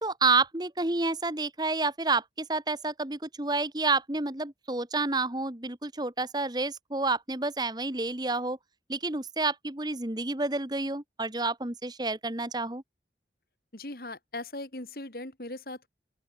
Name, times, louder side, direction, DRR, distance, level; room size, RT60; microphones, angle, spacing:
voice 1, 0.0-8.6 8.9-12.8, right 3 dB, 25° right, 1.5 m, -29 dB
voice 2, 13.7-15.9, left 2 dB, 55° left, 2.7 m, -39 dB
open air
head